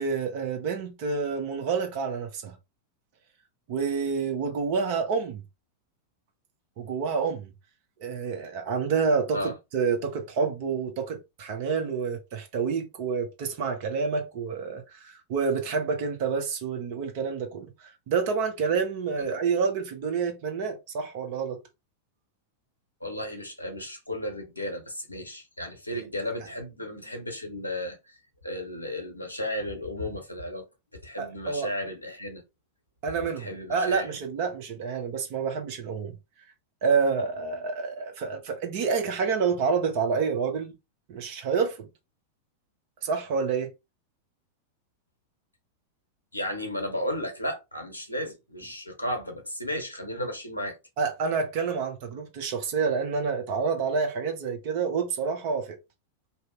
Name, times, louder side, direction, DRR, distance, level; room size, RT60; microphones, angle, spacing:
voice 1, 0.0-2.6 3.7-5.4 6.8-7.5 8.0-21.6 25.9-26.0 31.2-31.7 33.0-36.2 36.8-40.7 41.1-41.9 43.0-43.7 51.0-55.8, right 5 dB, 45° right, 0.8 m, -28 dB
voice 2, 23.0-28.2 28.4-30.6 30.9-32.4 33.2-34.1 46.3-50.8, left 1 dB, 85° left, 0.8 m, -34 dB
2.7 x 2.1 x 3.6 m
figure-of-eight pair, 90°, 0 cm